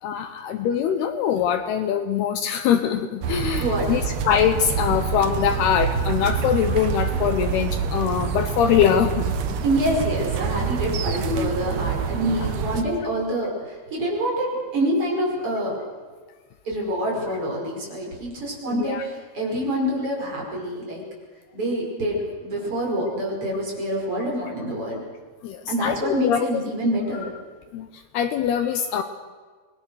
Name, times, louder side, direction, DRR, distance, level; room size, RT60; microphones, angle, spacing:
voice 1, 0.0-9.6 11.1-11.5 18.7-19.0 25.4-26.5 27.7-29.0, left 9 dB, 75° left, 8 dB, 2.8 m, -23 dB
sound 1, 3.2-12.8, right 7 dB, 75° right, 1.6 m, -26 dB
voice 2, 9.6-15.7 16.6-21.1 21.5-25.0 25.7-27.3, right 1 dB, 30° right, -2 dB, 6.1 m, -26 dB
26.5 x 21.0 x 6.4 m, 1.5 s
omnidirectional pair, 5.0 m